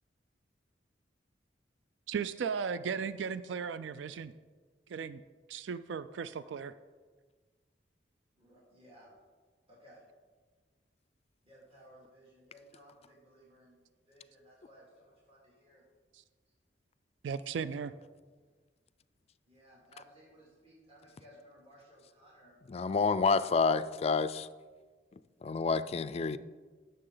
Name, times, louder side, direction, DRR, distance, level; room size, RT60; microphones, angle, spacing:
voice 1, 2.1-4.3 4.9-5.2 5.5-6.7 17.2-17.9, right 6 dB, 80° right, 14 dB, 0.4 m, -36 dB
voice 2, 8.4-9.1 9.7-10.0 11.4-13.8 14.1-15.9 19.5-23.1, equal, 35° right, -6 dB, 2.6 m, -59 dB
voice 3, 22.7-24.5 25.4-26.4, left 4 dB, 35° left, 14 dB, 0.3 m, -28 dB
16.5 x 6.7 x 3.9 m, 1.4 s
head